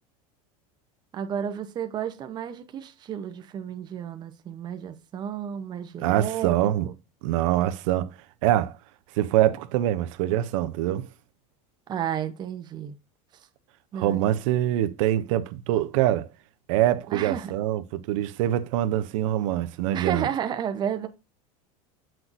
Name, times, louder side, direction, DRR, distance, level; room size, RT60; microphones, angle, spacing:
voice 1, 1.1-6.5 6.8-6.9 11.9-12.9 13.9-14.2 17.1-17.6 19.9-21.1, right 9 dB, 25° right, 0.7 m, -32 dB
voice 2, 6.0-6.9 7.2-8.1 8.4-8.8 9.2-11.0 13.9-16.3 16.7-20.3, right 13 dB, 70° right, 0.7 m, -24 dB
7.7 x 6.0 x 2.6 m
supercardioid pair, 155°, 17 cm